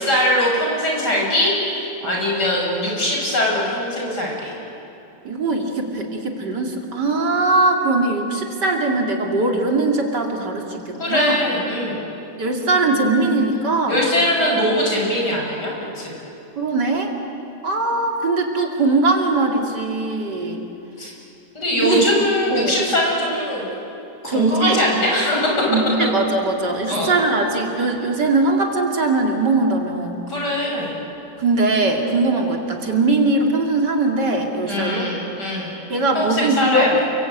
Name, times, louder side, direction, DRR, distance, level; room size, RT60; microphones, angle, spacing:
voice 1, 0.0-4.5 11.0-12.0 13.9-16.1 21.0-21.1 21.5-23.7 24.2-25.5 26.9-27.1 30.3-30.9 34.7-35.7 36.2-36.9, left 1 dB, 75° left, -2 dB, 7.3 m, -21 dB
voice 2, 5.3-11.4 12.4-14.0 16.6-17.1 17.6-20.7 21.8-22.1 22.5-22.8 24.2-24.8 25.7-30.2 31.4-35.1 35.9-37.0, right 2 dB, 80° right, 1 dB, 3.4 m, -20 dB
29.5 x 22.5 x 8.8 m, 3.0 s
omnidirectional pair, 1.8 m